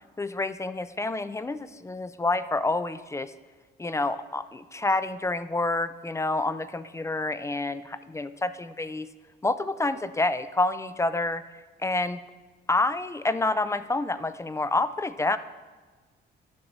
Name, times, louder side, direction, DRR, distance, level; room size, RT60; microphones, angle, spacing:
voice 1, 0.2-3.3 3.8-9.1 9.4-11.4 11.8-12.2 12.7-15.4, left 2 dB, 15° left, 13 dB, 0.3 m, -28 dB
10.5 x 5.9 x 3.9 m, 1.4 s
cardioid pair, 90°, 20 cm